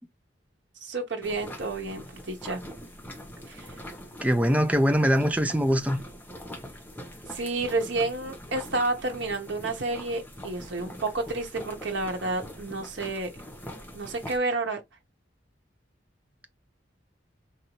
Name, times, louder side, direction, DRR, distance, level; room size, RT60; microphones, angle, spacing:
voice 1, 0.8-2.6 3.5-3.8 7.3-13.3 13.9-14.8, right 2 dB, 65° right, 1.0 m, -30 dB
sound 1, 1.2-14.4, equal, 10° left, 0.9 m, -43 dB
voice 2, 4.2-6.0, equal, 5° right, 0.4 m, -22 dB
4.1 x 2.7 x 3.0 m
head